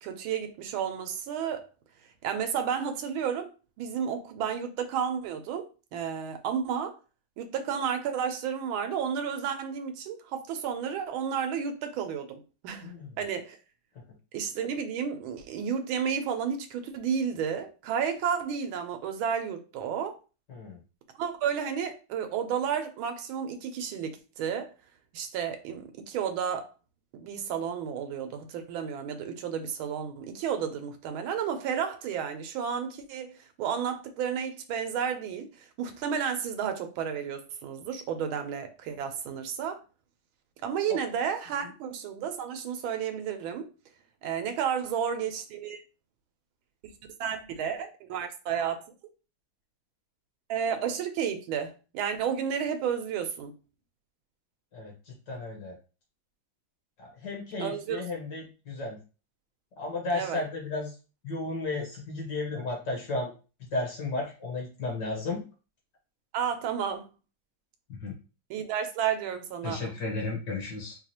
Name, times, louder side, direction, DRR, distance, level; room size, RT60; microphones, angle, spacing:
voice 1, 0.0-1.7 2.2-3.5 3.8-5.7 5.9-7.0 7.4-13.6 14.3-20.2 21.2-24.7 25.1-26.7 27.1-33.3 33.6-39.8 40.6-43.6 44.2-45.8 47.2-48.8 50.5-53.5 57.6-58.0 60.1-60.4 66.3-67.1 68.5-69.9, right 7 dB, 85° right, 1.4 m, -32 dB
voice 2, 54.7-55.7 57.0-59.0 59.8-60.9 61.2-63.3 63.7-65.4 67.9-68.2 69.6-71.0, left 3 dB, 60° left, 1.7 m, -34 dB
4.7 x 2.4 x 2.8 m
omnidirectional pair, 2.2 m